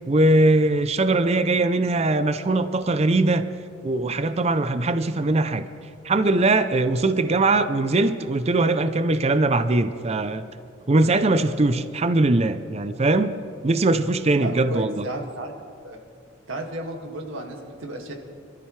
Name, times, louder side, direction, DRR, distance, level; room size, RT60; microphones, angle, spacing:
voice 1, 0.1-3.4 3.8-5.7 6.0-10.4 10.9-13.3 13.6-15.1, right 2 dB, 30° right, 11 dB, 0.5 m, -21 dB
voice 2, 14.4-15.5 15.8-16.0 16.5-18.1, right 1 dB, 70° right, 2 dB, 2.1 m, -33 dB
26.5 x 13.5 x 3.3 m, 2.4 s
head